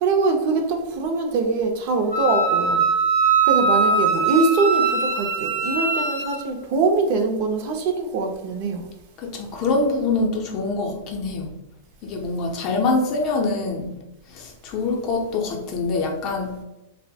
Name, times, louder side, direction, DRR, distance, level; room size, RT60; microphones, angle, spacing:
voice 1, 0.0-2.8 3.5-8.9, right 3 dB, 50° right, 0.5 m, -23 dB
Wind instrument woodwind instrument, 2.1-6.4, right 4 dB, 75° right, 0.8 m, -21 dB
voice 2, 9.2-11.5 12.0-13.9 14.3-16.6, left 3 dB, 40° left, 0.5 m, -24 dB
2.9 x 2.0 x 2.7 m
supercardioid pair, 140°, 0 cm